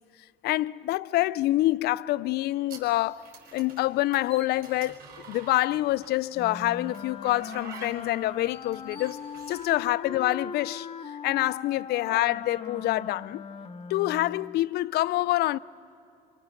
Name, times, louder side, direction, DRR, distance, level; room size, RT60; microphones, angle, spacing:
voice 1, 0.4-3.3 3.5-5.0 5.3-9.2 9.5-10.9 11.2-13.4 13.9-15.6, left 16 dB, 70° left, 0.4 m, -26 dB
sound 1, 2.7-6.2 6.9-9.7, right 5 dB, 60° right, 4.6 m, -47 dB
Wind instrument woodwind instrument, 6.3-14.6, left 6 dB, 35° left, 0.9 m, -40 dB
25.5 x 24.0 x 6.4 m
cardioid pair, 110°, 17 cm